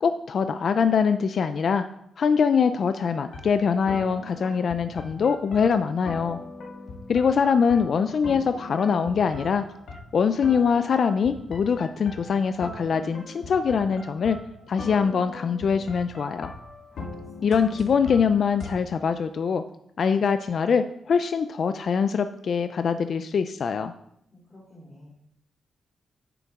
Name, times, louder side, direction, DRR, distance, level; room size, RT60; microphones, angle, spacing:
voice 1, 0.0-1.9 2.2-6.4 7.1-9.7 10.1-14.4 14.7-16.5 17.4-19.6 20.0-23.9, left 6 dB, 55° left, 10 dB, 0.4 m, -23 dB
sound 1, 3.2-18.7, left 2 dB, 70° left, 1.9 m, -41 dB
voice 2, 16.9-17.5 24.3-25.1, left 1 dB, 20° left, -8 dB, 3.5 m, -51 dB
9.3 x 6.9 x 3.6 m, 0.75 s
cardioid pair, 115°, 0 cm